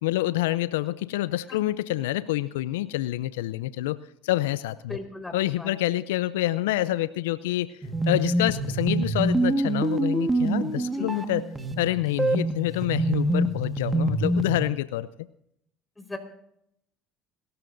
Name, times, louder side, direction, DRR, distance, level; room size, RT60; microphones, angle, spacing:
voice 1, 0.0-4.0 4.2-5.0 5.3-7.7 8.1-11.5 11.8-15.1, left 16 dB, 80° left, 16 dB, 0.5 m, -27 dB
voice 2, 4.9-5.7 10.9-11.3 16.0-16.2, left 2 dB, 15° left, 5 dB, 4.4 m, -38 dB
sound 1, 7.8-14.7, right 2 dB, 20° right, 1.6 m, -26 dB
29.5 x 13.5 x 2.6 m, 0.74 s
hypercardioid pair, 65°, 0 cm